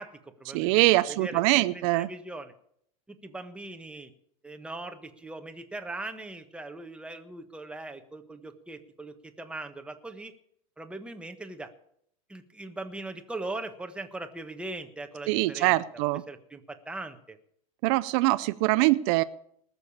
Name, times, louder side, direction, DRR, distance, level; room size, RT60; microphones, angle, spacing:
voice 1, 0.0-2.5 3.1-4.1 4.4-10.3 10.8-11.7 12.3-15.8 16.3-17.4, right 2 dB, 5° right, 6 dB, 1.3 m, -40 dB
voice 2, 0.5-2.1 15.3-16.2 17.8-19.2, right 20 dB, 55° right, 13 dB, 0.6 m, -23 dB
19.5 x 6.9 x 7.1 m, 0.67 s
supercardioid pair, 130°, 19 cm